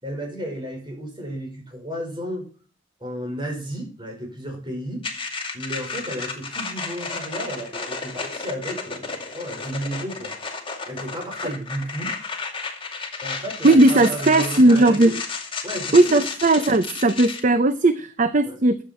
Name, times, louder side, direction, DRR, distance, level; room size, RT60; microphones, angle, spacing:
voice 1, 0.0-2.5 3.0-5.1 5.5-10.3 10.8-12.2 13.2-15.1 15.6-16.2 18.4-18.6, equal, 25° right, 2 dB, 5.2 m, -33 dB
sound 1, 5.0-17.4, left 4 dB, 30° left, 2.4 m, -32 dB
voice 2, 13.6-15.1 15.9-18.8, right 2 dB, 45° right, 11 dB, 0.7 m, -17 dB
14.5 x 8.3 x 4.4 m, 0.39 s
head